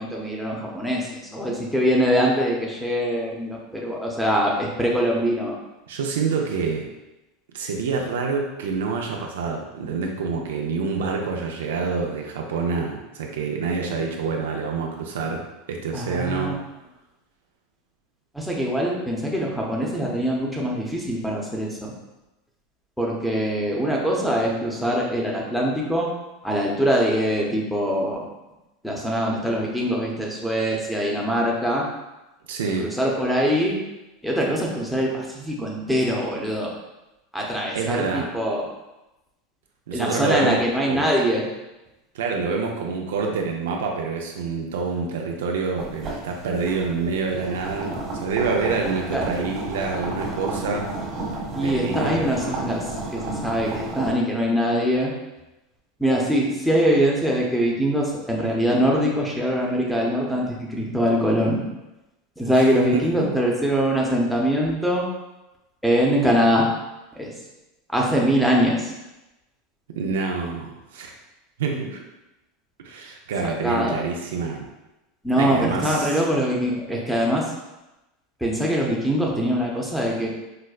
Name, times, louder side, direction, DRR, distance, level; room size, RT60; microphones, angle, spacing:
voice 1, 0.0-5.5 15.9-16.5 18.3-21.9 23.0-26.1 26.4-28.2 28.8-31.8 32.8-33.8 34.2-36.7 37.3-38.7 39.9-41.4 49.1-49.3 51.5-55.1 56.0-61.6 62.4-65.1 65.8-66.7 67.1-67.3 67.9-68.9 73.4-74.0 75.2-77.4 78.4-80.3, equal, ahead, -2 dB, 0.7 m, -23 dB
voice 2, 5.9-6.9 7.5-15.4 15.7-16.5 32.5-32.9 37.7-38.3 39.9-40.6 40.9-41.1 42.1-50.9 51.6-52.2 62.5-62.6 62.9-63.0 70.0-71.1 71.6-72.0 72.8-74.6 75.4-76.1, right 4 dB, 85° right, 1 dB, 0.5 m, -27 dB
sound 1, 45.8-54.1, right 2 dB, 40° right, 1.2 m, -32 dB
4.8 x 2.1 x 2.3 m, 0.99 s
supercardioid pair, 115°, 0 cm